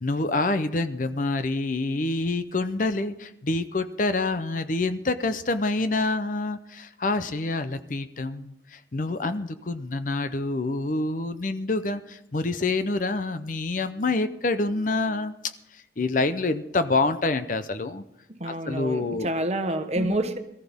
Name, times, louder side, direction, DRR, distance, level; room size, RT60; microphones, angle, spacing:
voice 1, 0.0-15.5 16.0-18.0 18.4-19.3 20.0-20.2, left 2 dB, 45° left, 11 dB, 0.6 m, -27 dB
voice 2, 18.3-20.4, right 1 dB, 35° right, 8 dB, 1.1 m, -28 dB
22.5 x 14.0 x 3.6 m, 0.83 s
head